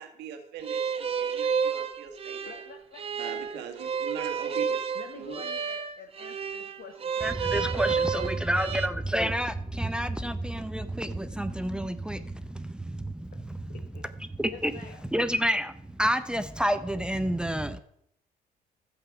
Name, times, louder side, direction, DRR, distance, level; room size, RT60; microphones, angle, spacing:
voice 1, 0.0-2.6 3.2-5.4, right 7 dB, 80° right, 4 dB, 1.7 m, -41 dB
sound 1, 0.6-8.9, right 6 dB, 35° right, 0.9 m, -31 dB
voice 2, 2.5-3.6 4.9-8.4 13.7-14.0 14.5-15.0, left 6 dB, 60° left, 3 dB, 1.4 m, -48 dB
voice 3, 7.2-13.6 14.2-14.7 15.1-17.8, right 1 dB, 5° right, 11 dB, 0.6 m, -29 dB
12.0 x 8.1 x 5.9 m, 0.72 s
cardioid pair, 110°, 17 cm